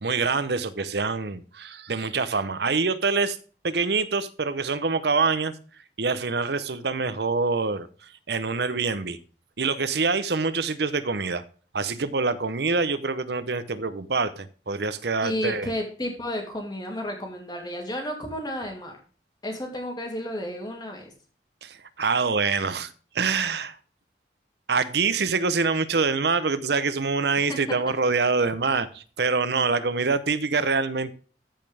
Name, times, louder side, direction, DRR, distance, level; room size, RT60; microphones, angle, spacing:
voice 1, 0.0-3.4 3.6-5.5 6.0-9.2 9.6-11.4 11.7-15.7 21.6-23.8 24.7-31.1, right 4 dB, 65° right, 14 dB, 0.8 m, -25 dB
voice 2, 15.2-19.0 19.4-21.1 27.4-27.8, equal, 20° left, 2 dB, 2.5 m, -32 dB
14.5 x 5.3 x 3.5 m, 0.38 s
head